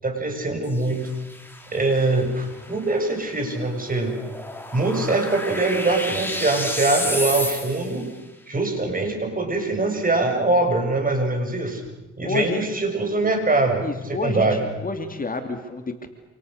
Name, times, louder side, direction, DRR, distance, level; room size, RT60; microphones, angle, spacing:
voice 1, 0.0-1.1 1.7-4.2 4.7-8.1 8.5-11.8 12.2-14.6, right 2 dB, 30° right, 4 dB, 6.9 m, -23 dB
sound 1, 0.6-8.1, left 1 dB, 5° left, 5.0 m, -32 dB
voice 2, 12.2-12.6 13.8-16.1, left 3 dB, 30° left, 6 dB, 2.8 m, -29 dB
28.5 x 28.0 x 6.8 m, 1.1 s
cardioid pair, 90°, 30 cm